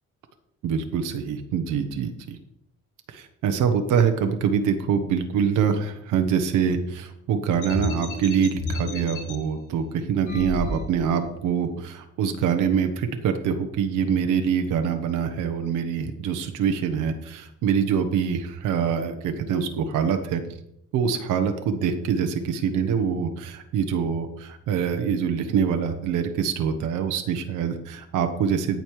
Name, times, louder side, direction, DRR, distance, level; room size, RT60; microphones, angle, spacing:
voice 1, 0.6-2.4 3.1-20.4 20.9-28.8, right 7 dB, 90° right, 6 dB, 1.2 m, -25 dB
sound 1, 7.6-9.3 10.2-11.2, left 2 dB, 80° left, 2.9 m, -31 dB
14.0 x 5.4 x 4.8 m, 0.76 s
cardioid pair, 90°, 30 cm